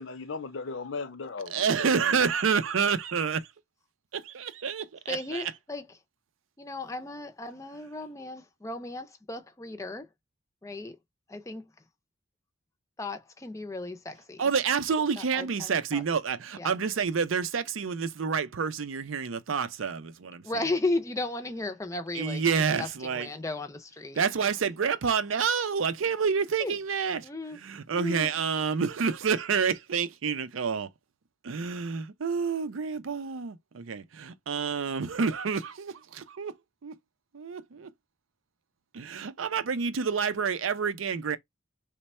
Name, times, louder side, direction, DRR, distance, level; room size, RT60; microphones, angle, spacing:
voice 1, 0.0-2.2, left 4 dB, 70° left, 0.6 m, -37 dB
voice 2, 1.5-3.5 4.1-5.5 14.4-20.6 22.1-23.3 24.2-27.3 27.5-30.9 31.4-36.6 36.8-36.9 37.3-37.9 38.9-41.4, right 6 dB, 90° right, 0.5 m, -28 dB
voice 3, 5.1-5.9 6.6-10.1 10.6-11.0 11.3-11.6 13.0-14.4 15.2-16.0 16.6-16.8 20.4-22.4 22.8-24.2 26.6-26.7 27.2-27.6 27.9-28.3, left 2 dB, 15° left, 0.4 m, -35 dB
3.2 x 2.2 x 4.2 m
head